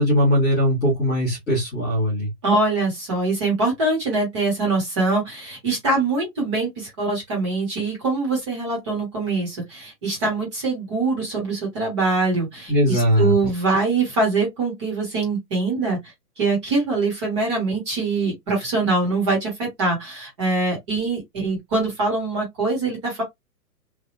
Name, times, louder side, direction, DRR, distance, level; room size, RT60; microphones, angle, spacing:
voice 1, 0.0-2.3 12.7-13.3, equal, 10° left, 1.0 m, -20 dB
voice 2, 2.4-16.0 16.4-23.2, right 3 dB, 20° right, 1.2 m, -23 dB
3.3 x 2.5 x 2.5 m
hypercardioid pair, 175°, 48 cm